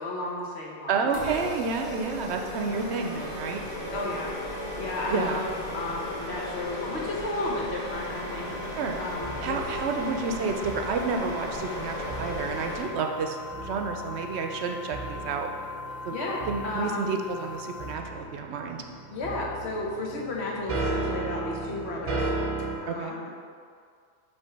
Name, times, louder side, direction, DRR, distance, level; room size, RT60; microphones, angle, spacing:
voice 1, 0.0-1.4 3.9-4.3 4.8-8.5 9.0-9.6 16.1-17.1 19.1-22.3 22.8-23.3, left 2 dB, 65° left, -3 dB, 1.2 m, -33 dB
voice 2, 0.9-3.6 5.1-5.4 8.8-9.0 9.4-13.4 13.6-15.5 16.1-16.2 16.5-18.8 22.9-23.2, right 5 dB, 70° right, 3 dB, 0.8 m, -30 dB
sound 1, 1.1-12.8, left 1 dB, 50° left, 1.7 m, -36 dB
sound 2, 7.9-17.9, left 3 dB, 20° left, 0.5 m, -42 dB
sound 3, 8.5-22.8, right 2 dB, 30° right, 0.7 m, -37 dB
6.0 x 3.2 x 5.7 m, 2.1 s
omnidirectional pair, 1.2 m